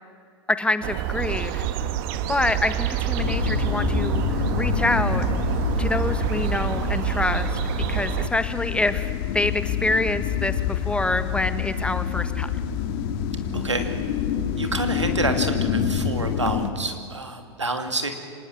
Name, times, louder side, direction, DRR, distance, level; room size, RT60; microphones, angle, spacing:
voice 1, 0.5-1.7 2.3-4.2 4.5-5.3 5.8-7.6 7.9-12.5, left 2 dB, 5° left, 11 dB, 1.3 m, -26 dB
sound 1, 0.8-8.3, right 11 dB, 50° right, 1.4 m, -27 dB
sound 2, 3.2-16.7, left 9 dB, 50° left, 2.0 m, -27 dB
voice 2, 13.5-13.9 14.6-18.1, right 3 dB, 90° right, 6 dB, 2.6 m, -28 dB
25.5 x 19.5 x 7.6 m, 2.1 s
figure-of-eight pair, 90°, 15 cm